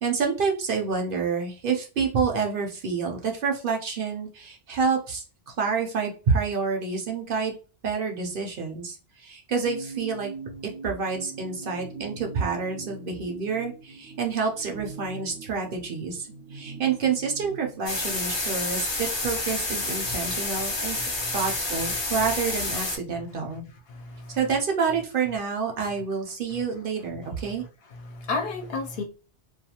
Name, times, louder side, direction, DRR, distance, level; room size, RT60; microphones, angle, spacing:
voice 1, 0.0-7.5 7.8-10.3 10.8-21.0 21.3-23.6 24.3-27.6, right 5 dB, 60° right, 0.7 m, -28 dB
sound 1, 9.6-17.8, right 4 dB, 85° right, 0.9 m, -41 dB
sound 2, 17.9-23.0, left 2 dB, 35° left, 0.5 m, -29 dB
voice 2, 21.0-21.4 23.1-23.2 23.9-24.4 26.5-26.6 27.9-29.0, left 3 dB, 65° left, 0.8 m, -33 dB
2.4 x 2.3 x 2.8 m
omnidirectional pair, 1.1 m